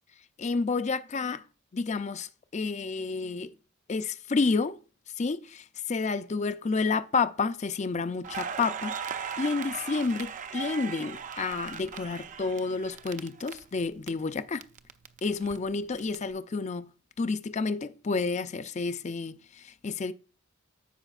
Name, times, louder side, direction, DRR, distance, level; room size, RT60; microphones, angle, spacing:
voice 1, 0.4-1.4 1.7-3.5 3.9-4.8 5.2-9.0 9.4-14.6 15.2-16.9 17.2-20.1, left 4 dB, 35° left, 0.4 m, -30 dB
Crackle, 8.2-14.1 14.4-16.1, right 6 dB, 40° right, 0.5 m, -38 dB
14.0 x 5.0 x 2.4 m
head